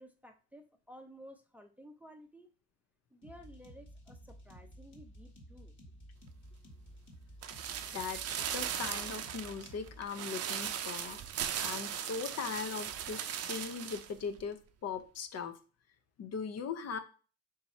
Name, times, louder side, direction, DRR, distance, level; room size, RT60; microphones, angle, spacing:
voice 1, 0.0-2.5 3.1-5.7, equal, 5° right, 5 dB, 0.5 m, -54 dB
sound 1, 3.2-10.1, equal, 40° left, 1.4 m, -53 dB
sound 2, 7.4-14.1 14.4-14.5, right 9 dB, 55° right, 0.5 m, -38 dB
voice 2, 7.9-11.2 11.6-15.5 16.2-17.0, left 6 dB, 55° left, 8 dB, 0.6 m, -39 dB
3.7 x 2.8 x 4.1 m, 0.37 s
cardioid pair, 90°, 30 cm